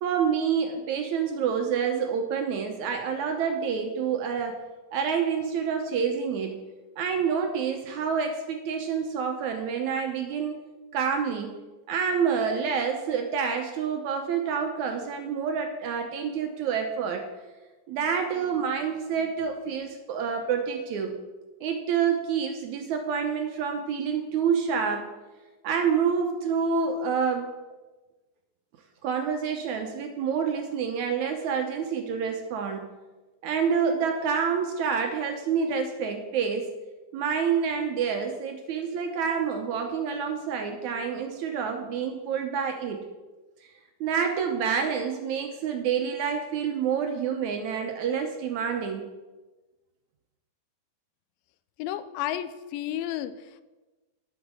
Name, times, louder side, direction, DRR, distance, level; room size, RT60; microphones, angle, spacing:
voice 1, 0.0-4.6 4.9-6.6 7.0-10.6 10.9-11.5 11.9-17.3 17.9-21.2 21.6-25.1 25.6-27.5 29.0-32.9 33.4-36.7 37.1-43.1 44.0-49.1, right 6 dB, 70° right, 4 dB, 1.9 m, -28 dB
voice 2, 51.8-53.6, left 12 dB, 85° left, 13 dB, 2.3 m, -32 dB
10.0 x 7.1 x 6.2 m, 1.2 s
omnidirectional pair, 4.0 m